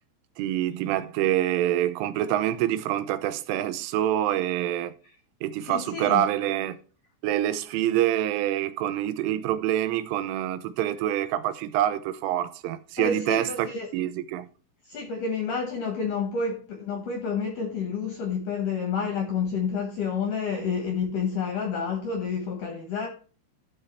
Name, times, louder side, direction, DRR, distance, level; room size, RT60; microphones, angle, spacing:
voice 1, 0.4-4.9 5.4-6.8 7.2-14.5, right 12 dB, 85° right, 3.2 m, -26 dB
voice 2, 5.6-6.5 7.7-7.8 13.0-13.9 14.9-23.1, left 5 dB, 70° left, 2.0 m, -29 dB
13.5 x 5.1 x 4.3 m
omnidirectional pair, 5.6 m